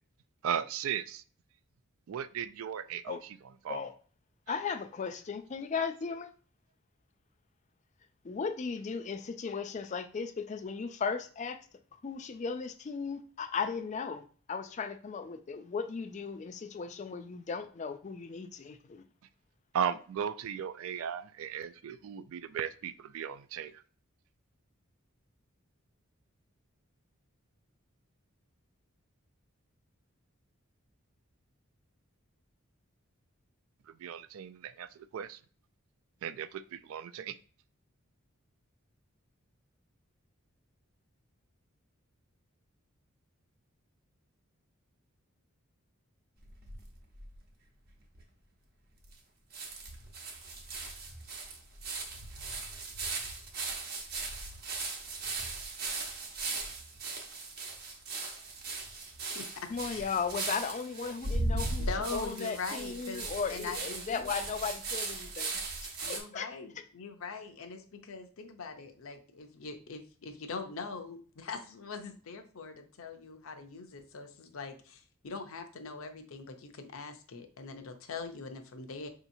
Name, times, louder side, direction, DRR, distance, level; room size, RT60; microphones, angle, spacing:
voice 1, 0.4-1.2 2.1-3.4 3.6-3.8 4.5-4.6 5.7-5.9 19.7-23.8 33.9-35.4 36.2-37.4, right 8 dB, 75° right, 12 dB, 0.3 m, -36 dB
voice 2, 4.5-6.3 8.2-11.6 12.0-19.0 59.7-65.5 66.1-66.5, left 5 dB, 35° left, 8 dB, 0.3 m, -36 dB
sound 1, 46.4-47.4 47.9-48.0 48.2-48.3 49.1-49.2 49.5-66.2, right 3 dB, 45° right, 0.8 m, -38 dB
voice 3, 59.3-60.1 61.8-64.4 66.0-79.1, left 4 dB, 75° left, 6 dB, 0.6 m, -42 dB
4.8 x 2.8 x 2.6 m, 0.41 s
head